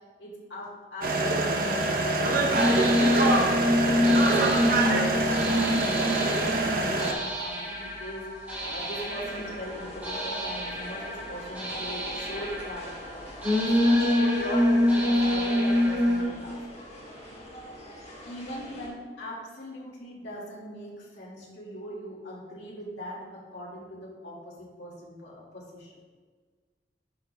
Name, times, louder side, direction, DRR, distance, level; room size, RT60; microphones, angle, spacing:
voice 1, 0.2-4.1 4.4-16.6 18.2-26.0, equal, 75° left, -4 dB, 1.9 m, -40 dB
sound 1, 1.0-7.1, right 2 dB, 50° right, 0.7 m, -25 dB
sound 2, 2.5-16.2, left 1 dB, 10° right, 2.1 m, -26 dB
sound 3, 8.5-18.9, equal, 40° left, 1.6 m, -44 dB
10.5 x 5.6 x 2.2 m, 1.5 s
head